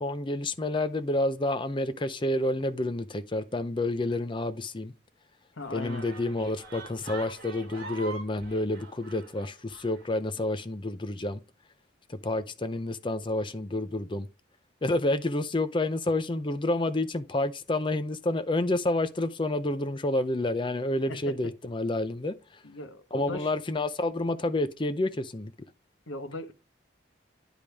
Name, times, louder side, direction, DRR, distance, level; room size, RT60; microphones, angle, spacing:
voice 1, 0.0-4.9 5.7-11.4 12.2-14.3 14.8-22.3 23.1-25.5, left 2 dB, 25° left, 0.6 m, -29 dB
voice 2, 5.6-6.1 21.1-21.5 22.6-23.5 26.1-26.5, left 2 dB, 90° left, 1.3 m, -38 dB
sound 1, 5.6-10.1, right 3 dB, 55° right, 2.9 m, -44 dB
10.0 x 5.2 x 3.4 m
head